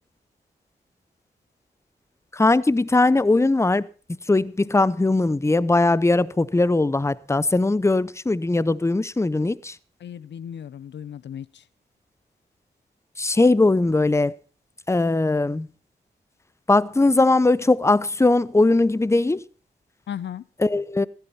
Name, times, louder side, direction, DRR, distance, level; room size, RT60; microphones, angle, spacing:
voice 1, 2.3-3.8 4.3-9.7 13.2-14.3 14.9-15.7 16.7-19.4 20.6-21.1, left 2 dB, 15° left, 0.6 m, -20 dB
voice 2, 10.0-11.6 20.1-20.4, left 9 dB, 75° left, 0.6 m, -35 dB
15.0 x 11.5 x 4.2 m
cardioid pair, 40°, 19 cm